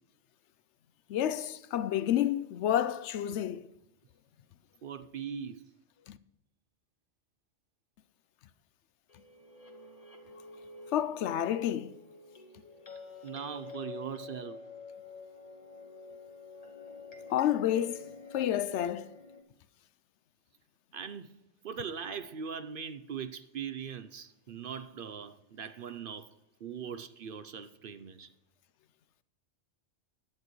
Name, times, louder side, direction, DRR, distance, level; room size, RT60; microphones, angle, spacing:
voice 1, 1.1-3.7 6.1-6.2 10.9-11.9 17.3-19.1, left 11 dB, 75° left, 0.9 m, -30 dB
voice 2, 4.8-5.7 13.2-14.6 20.9-21.4 21.6-26.3 26.6-28.3, right 7 dB, 55° right, 0.7 m, -40 dB
sound 1, 9.1-19.4, left 4 dB, 35° left, 1.5 m, -49 dB
16.0 x 10.5 x 3.1 m
omnidirectional pair, 1.2 m